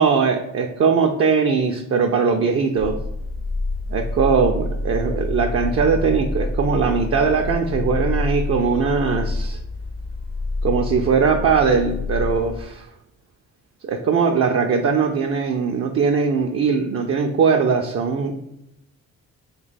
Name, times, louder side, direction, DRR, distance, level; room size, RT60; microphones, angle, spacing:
voice 1, 0.0-3.0 3.9-9.6 10.6-12.9 13.8-18.3, right 5 dB, 40° right, 3 dB, 0.4 m, -20 dB
sound 1, 2.8-12.6, left 2 dB, 35° left, 0.5 m, -27 dB
2.8 x 2.2 x 4.0 m, 0.81 s
supercardioid pair, 50°, 37 cm